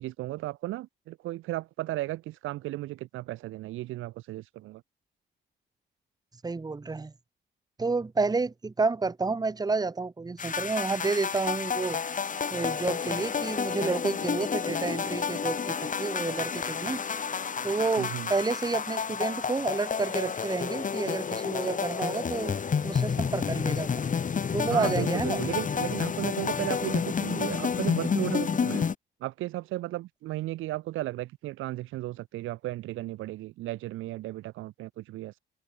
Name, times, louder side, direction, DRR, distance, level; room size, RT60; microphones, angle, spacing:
voice 1, 0.0-4.8 18.0-18.3 24.7-28.9 29.2-35.4, right 17 dB, 90° right, 1.2 m, -35 dB
voice 2, 6.4-7.1 7.8-12.0 12.5-17.0 17.6-22.5 22.8-23.9 24.5-25.4, right 3 dB, 20° right, 1.2 m, -30 dB
sound 1, 10.4-29.0, left 6 dB, 40° left, 2.7 m, -30 dB
open air
cardioid pair, 90°, 20 cm